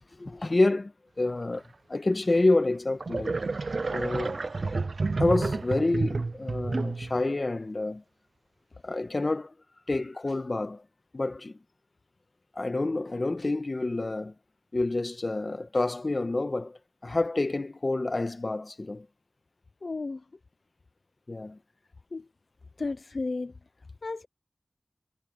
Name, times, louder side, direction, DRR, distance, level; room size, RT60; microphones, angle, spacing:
voice 1, 0.2-1.6 1.9-3.4 3.9-4.4 5.2-8.0 8.8-9.5 9.9-10.8 11.1-11.6 12.5-14.3 14.7-19.1 21.3-21.6, left 2 dB, 50° left, 1.3 m, -28 dB
sound 1, 2.3-2.4 3.0-7.2, right 3 dB, 75° right, 0.4 m, -30 dB
voice 2, 19.8-20.2 22.1-22.3 22.8-23.5 24.0-24.3, left 3 dB, 70° left, 0.5 m, -33 dB
wide cardioid pair, 65°, 0 cm